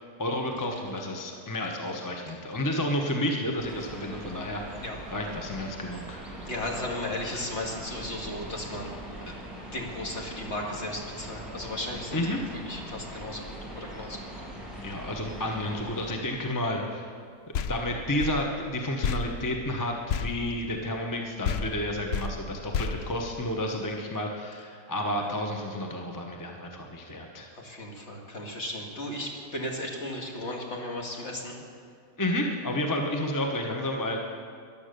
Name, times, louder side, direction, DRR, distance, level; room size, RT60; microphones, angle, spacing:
voice 1, 0.0-4.8 5.1-6.2 12.1-12.4 14.8-17.1 17.7-27.5 32.2-34.2, left 1 dB, 15° left, 2 dB, 0.9 m, -31 dB
sound 1, 3.6-16.1, right 1 dB, ahead, 3.1 m, -42 dB
voice 2, 6.5-9.0 9.3-9.4 9.7-12.4 12.7-14.2 27.5-31.6, left 1 dB, 45° left, -1 dB, 2.2 m, -35 dB
sound 2, 17.5-21.2 21.4-23.9, left 6 dB, 85° left, 0.5 m, -33 dB
14.5 x 11.0 x 6.7 m, 2.1 s
omnidirectional pair, 1.7 m